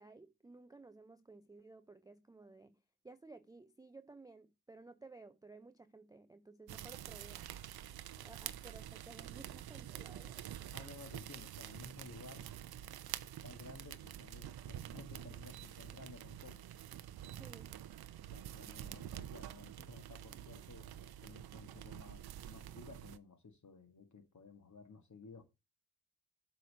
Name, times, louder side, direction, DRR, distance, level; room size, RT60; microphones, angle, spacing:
voice 1, 0.0-7.5 8.2-10.4 17.4-17.8, right 3 dB, 10° right, 0.4 m, -56 dB
sound 1, 6.7-23.2, right 11 dB, 55° right, 0.6 m, -48 dB
voice 2, 10.7-12.5 12.8-12.9 13.2-16.7 18.3-25.4, left 4 dB, 35° left, 1.6 m, -55 dB
7.6 x 3.2 x 5.3 m
supercardioid pair, 55°, 47 cm